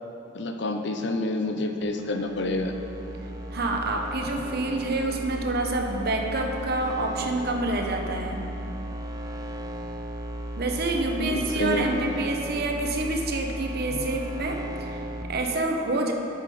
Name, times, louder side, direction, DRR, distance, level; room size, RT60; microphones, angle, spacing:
voice 1, 0.3-2.7 11.2-11.9 14.0-14.1, left 2 dB, 60° left, 5 dB, 0.7 m, -28 dB
sound 1, 1.8-15.2, equal, 20° right, 0.6 m, -36 dB
voice 2, 3.5-8.4 10.6-16.1, right 2 dB, 55° right, 2 dB, 0.9 m, -28 dB
10.5 x 6.0 x 4.9 m, 2.9 s
head